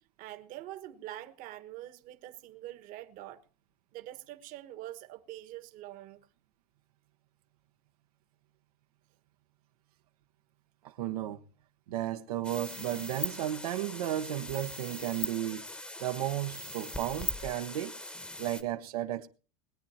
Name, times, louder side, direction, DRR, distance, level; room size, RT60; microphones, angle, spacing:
voice 1, 0.2-3.4 3.9-6.3, right 14 dB, 45° right, 1.3 m, -45 dB
voice 2, 10.8-11.4 11.9-15.7 16.0-18.0 18.4-19.3, right 13 dB, 85° right, 1.1 m, -34 dB
sound 1, 12.4-18.6, left 2 dB, 5° left, 1.0 m, -40 dB
21.0 x 9.0 x 4.3 m
supercardioid pair, 135°, 19 cm